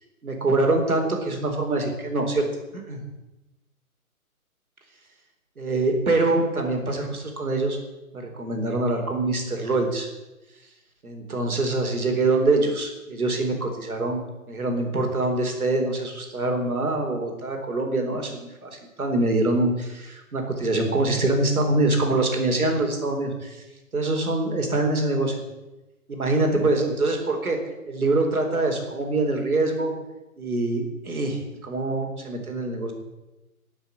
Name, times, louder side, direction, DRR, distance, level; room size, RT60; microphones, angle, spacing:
voice 1, 0.2-2.5 2.7-3.0 5.6-7.8 8.1-10.1 11.0-23.6 23.9-25.4 26.1-27.6 27.9-29.9 30.4-32.9, right 2 dB, 80° right, 3 dB, 4.3 m, -24 dB
13.0 x 7.9 x 8.1 m, 1.0 s
figure-of-eight pair, 150°, 43 cm